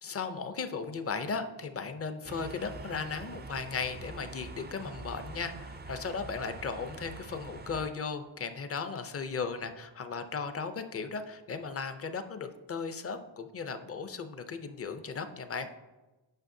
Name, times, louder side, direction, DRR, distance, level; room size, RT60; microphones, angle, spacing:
voice 1, 0.0-15.7, left 5 dB, 30° left, 9 dB, 0.5 m, -36 dB
sound 1, 2.2-7.9, right 3 dB, 25° right, 0.3 m, -45 dB
8.9 x 5.6 x 2.7 m, 1.1 s
wide cardioid pair, 100°, 48 cm